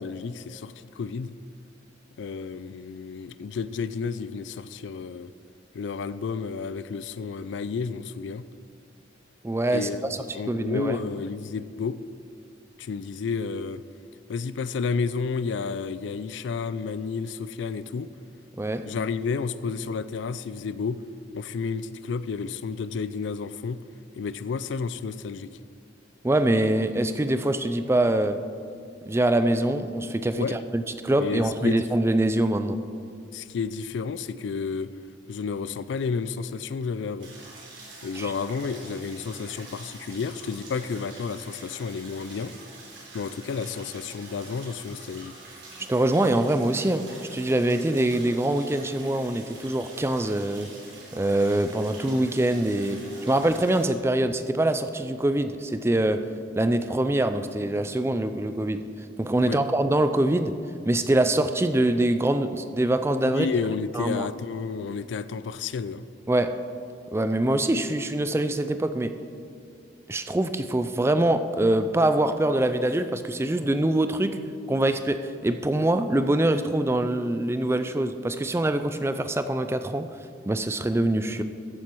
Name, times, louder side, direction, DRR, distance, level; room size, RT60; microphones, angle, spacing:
voice 1, 0.0-1.4 2.2-5.3 5.7-8.5 9.7-12.0 12.8-13.8 14.3-18.1 18.8-21.0 21.3-23.8 24.2-25.5 30.3-30.6 31.2-31.9 33.3-34.9 35.3-37.3 38.0-42.5 43.1-45.3 59.4-59.6 63.2-66.0, left 5 dB, 65° left, 15 dB, 0.3 m, -31 dB
voice 2, 9.4-9.9 10.5-11.0 18.6-18.9 26.2-28.4 29.1-32.8 38.2-38.3 45.9-50.7 51.1-56.3 56.6-58.8 59.2-60.6 60.9-63.5 63.9-64.3 66.3-66.6 67.1-69.2 70.1-74.4 74.7-80.1 80.5-81.4, right 1 dB, 15° right, 10 dB, 0.3 m, -24 dB
sound 1, 37.2-53.9, right 2 dB, 70° right, 3.0 m, -46 dB
14.0 x 7.4 x 4.6 m, 2.3 s
head